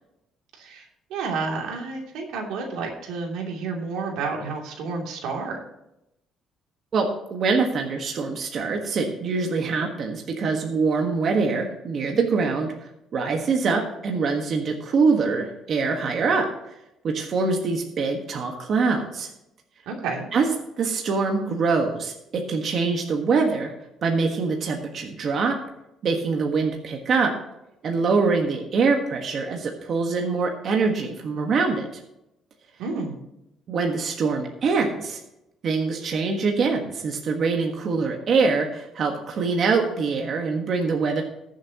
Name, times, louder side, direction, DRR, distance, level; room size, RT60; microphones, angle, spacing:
voice 1, 0.6-5.6 19.9-20.3 32.8-33.2, right 4 dB, 90° right, 0 dB, 2.8 m, -30 dB
voice 2, 6.9-16.5 17.0-19.3 20.3-20.5 20.8-23.7 24.0-25.6 26.0-27.3 27.8-31.9 33.7-35.2 35.6-41.2, right 4 dB, 45° right, 2 dB, 1.4 m, -24 dB
21.0 x 7.4 x 3.0 m, 0.86 s
cardioid pair, 155°, 0 cm